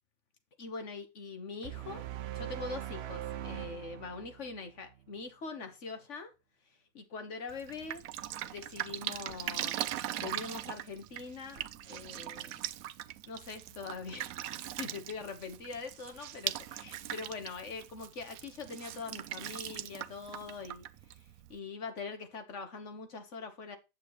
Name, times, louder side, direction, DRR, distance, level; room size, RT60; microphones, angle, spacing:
voice 1, 0.6-2.0 2.3-6.3 6.9-8.0 8.4-9.8 10.2-12.6 13.3-14.4 14.8-20.8 21.5-23.8, left 4 dB, 60° left, 1.5 m, -43 dB
sound 1, 1.6-5.0, right 12 dB, 60° right, 0.8 m, -41 dB
Drip, 7.5-21.6, right 12 dB, 90° right, 1.0 m, -40 dB
8.5 x 6.7 x 3.0 m
omnidirectional pair, 1.4 m